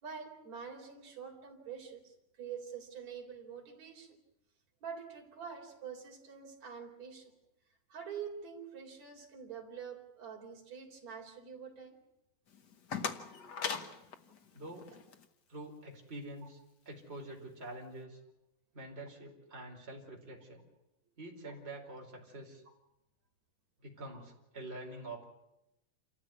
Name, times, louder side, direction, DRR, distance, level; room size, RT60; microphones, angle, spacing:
voice 1, 0.0-4.2 4.8-7.3 7.9-12.0, right 7 dB, 50° right, 1 dB, 5.1 m, -46 dB
sound 1, 12.5-15.3, left 6 dB, 55° left, 1.2 m, -40 dB
voice 2, 14.5-14.9 15.5-16.6 16.8-18.2 18.7-20.6 21.2-22.6 23.8-25.2, right 1 dB, 15° right, 0 dB, 4.7 m, -46 dB
28.5 x 14.5 x 9.7 m, 0.89 s
omnidirectional pair, 4.1 m